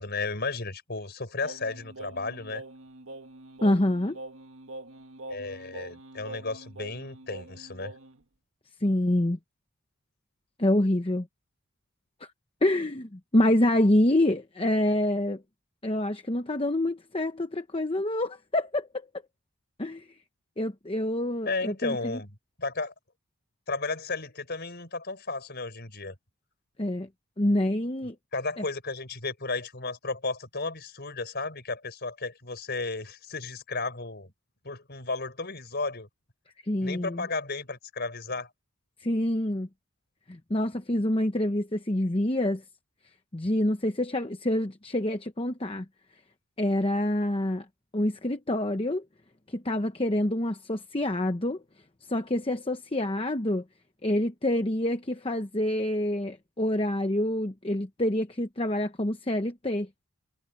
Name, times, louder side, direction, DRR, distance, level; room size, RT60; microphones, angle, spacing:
voice 1, 0.0-2.6 5.3-7.9 21.5-22.3 22.6-22.9 23.7-26.2 28.3-34.3 34.6-36.1 36.8-38.5, left 3 dB, 45° left, 5.3 m, -34 dB
Singing, 1.4-8.2, right 2 dB, 65° right, 1.7 m, -44 dB
voice 2, 3.6-4.2 8.8-9.4 10.6-11.3 12.2-12.3 12.6-15.4 15.8-19.1 19.8-20.2 20.6-22.2 26.8-27.1 27.4-28.2 28.6-28.7 36.6-37.3 39.0-39.7 40.3-42.6 43.3-45.9 46.6-47.7 47.9-49.0 49.5-51.6 52.0-53.6 54.0-59.9, left 1 dB, 25° left, 0.9 m, -27 dB
head